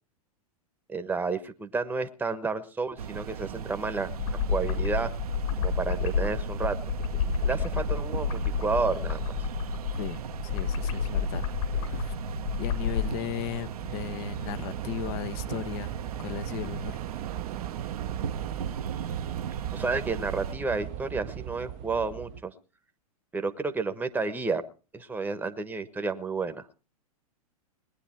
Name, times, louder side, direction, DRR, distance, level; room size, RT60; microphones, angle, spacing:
voice 1, 0.9-4.1 4.5-5.1 5.6-6.7 7.4-9.3 19.7-22.5 23.3-24.6 24.9-26.6, right 4 dB, 10° right, 1.1 m, -31 dB
sound 1, 3.0-20.5, right 7 dB, 75° right, 0.9 m, -37 dB
sound 2, 4.1-13.1, left 6 dB, 65° left, 5.0 m, -30 dB
voice 2, 10.0-11.5 11.8-12.1 12.5-17.0, left 11 dB, 45° left, 1.0 m, -36 dB
Train / Subway metro underground, 11.3-22.4, right 11 dB, 40° right, 0.7 m, -39 dB
20.5 x 9.9 x 4.4 m
hypercardioid pair, 105°, 19 cm